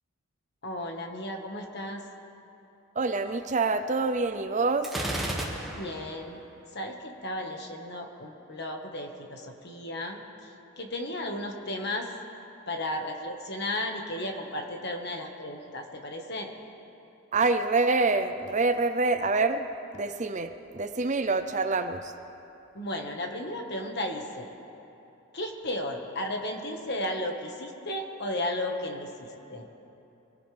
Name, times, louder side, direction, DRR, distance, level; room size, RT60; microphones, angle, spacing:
voice 1, 0.6-2.0 5.8-6.4 6.7-10.2 10.8-12.1 12.7-16.5 22.7-24.5 25.3-29.7, left 1 dB, 50° left, 3 dB, 1.6 m, -34 dB
voice 2, 3.0-4.9 17.3-19.7 19.9-22.1, right 3 dB, 35° right, 9 dB, 0.5 m, -26 dB
Gunshot gunfire, 4.8-6.1, right 1 dB, ahead, 1.9 m, -32 dB
24.5 x 17.0 x 3.4 m, 2.9 s
head